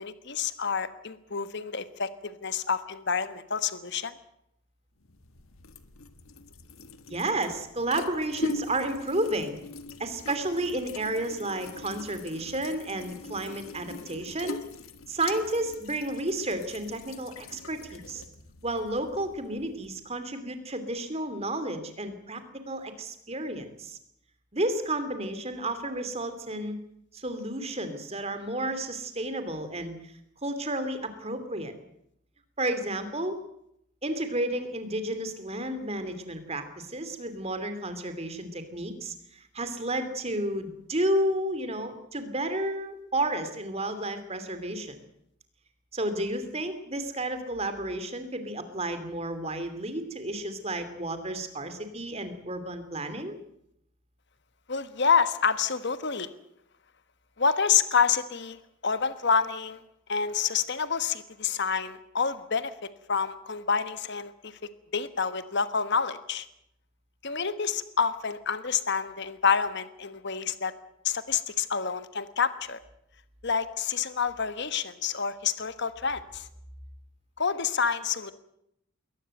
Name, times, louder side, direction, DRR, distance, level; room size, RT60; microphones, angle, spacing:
voice 1, 0.0-4.1 54.7-56.3 57.4-58.6 58.8-59.8 60.1-62.7 63.1-64.6 64.9-66.5 67.2-70.7 71.0-72.8 73.4-76.5 77.4-78.3, left 6 dB, 55° left, 12 dB, 1.3 m, -28 dB
sound 1, 5.0-20.1, left 2 dB, 75° left, 1.6 m, -42 dB
voice 2, 7.1-9.6 10.0-14.6 15.1-18.2 18.6-22.4 22.7-24.0 24.5-26.7 27.1-30.1 30.4-31.7 32.6-33.4 34.0-45.0 45.9-53.4, right 1 dB, 30° right, 10 dB, 2.8 m, -32 dB
22.0 x 19.0 x 7.9 m, 0.75 s
head